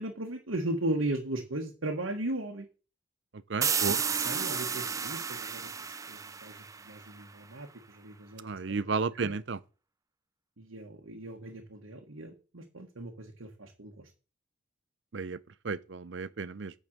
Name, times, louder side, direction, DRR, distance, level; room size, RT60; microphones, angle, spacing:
voice 1, 0.0-2.7 3.9-5.7 6.1-9.4 10.6-14.1, right 1 dB, 80° right, 1.4 m, -37 dB
voice 2, 3.5-4.0 8.4-9.6 15.1-15.4 15.6-16.7, right 4 dB, 60° right, 0.6 m, -32 dB
sound 1, 3.6-7.2, right 6 dB, 15° right, 0.4 m, -32 dB
8.9 x 5.4 x 6.5 m
head